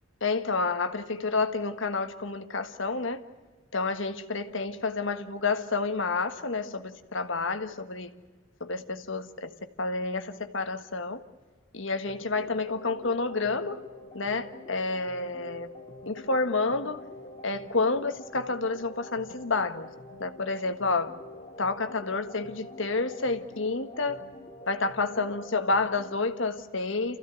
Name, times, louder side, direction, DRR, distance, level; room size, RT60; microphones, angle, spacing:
voice 1, 0.2-3.2 3.7-8.1 8.6-9.5 9.8-11.2 11.7-13.8 14.1-15.7 16.1-17.0 17.4-19.9 20.2-21.1 21.6-24.2 24.7-27.2, left 3 dB, 70° left, 8 dB, 1.5 m, -29 dB
sound 1, 12.1-26.2, left 1 dB, 30° left, 2.2 m, -46 dB
28.5 x 15.5 x 9.1 m, 1.3 s
head